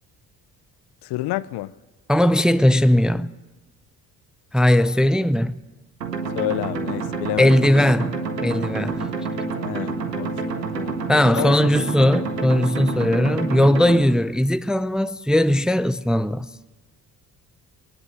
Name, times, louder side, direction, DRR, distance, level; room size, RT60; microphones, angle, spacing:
voice 1, 1.0-1.7 6.4-7.5 9.6-11.0 11.4-11.6, left 16 dB, 55° left, 0.8 m, -29 dB
voice 2, 2.1-3.3 4.5-5.6 7.4-8.2 8.4-9.0 11.1-16.5, left 1 dB, ahead, 0.6 m, -18 dB
sound 1, 6.0-14.0, right 4 dB, 85° right, 1.7 m, -28 dB
20.5 x 19.0 x 8.2 m
figure-of-eight pair, 45°, 48 cm